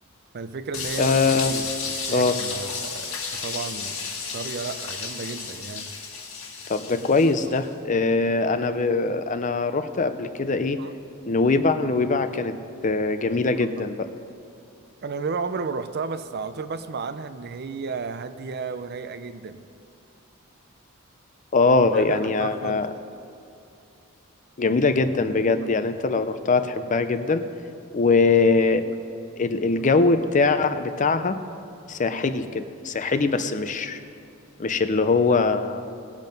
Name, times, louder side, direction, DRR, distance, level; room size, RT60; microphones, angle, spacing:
voice 1, 0.3-1.2 1.5-5.9 10.8-10.9 15.0-19.6 21.6-22.9, right 4 dB, 50° right, 11 dB, 0.5 m, -33 dB
sound 1, 0.7-7.6, left 5 dB, 70° left, 1.7 m, -33 dB
voice 2, 1.0-1.5 2.1-2.3 6.7-10.8 11.3-12.5 12.8-14.1 21.5-22.9 24.6-27.5 27.9-28.8 29.4-31.4 31.9-34.0 34.6-35.8, left 3 dB, 35° left, 10 dB, 0.5 m, -22 dB
19.0 x 7.4 x 5.3 m, 2.5 s
head